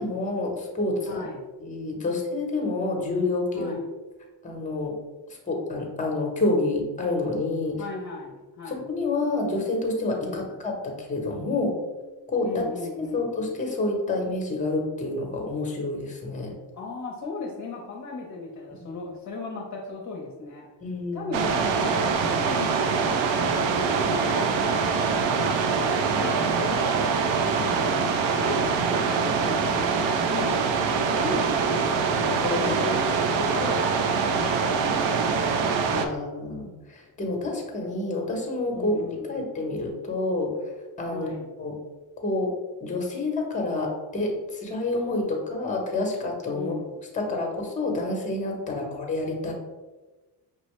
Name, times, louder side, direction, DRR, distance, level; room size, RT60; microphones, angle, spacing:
voice 1, 0.0-1.2 1.6-3.7 4.4-4.9 5.3-7.7 8.7-11.7 12.3-12.5 13.0-16.5 18.7-18.9 20.8-21.3 26.2-26.4 32.4-32.8 35.9-40.5 41.0-41.3 41.6-41.7 42.2-42.5 42.8-46.8 47.1-49.5, left 2 dB, 15° left, 1 dB, 1.0 m, -28 dB
voice 2, 1.0-1.4 3.5-3.8 7.8-8.8 10.2-10.5 12.4-13.3 16.7-20.7 21.1-27.1 27.5-28.7 29.0-30.8 31.1-36.3 38.7-39.5 41.1-41.5 46.5-46.9 48.7-49.0, left 3 dB, 40° left, -2 dB, 0.7 m, -37 dB
sound 1, 21.3-36.1, right 5 dB, 90° right, 0.6 m, -24 dB
5.4 x 2.7 x 3.1 m, 1.2 s
cardioid pair, 135°, 44 cm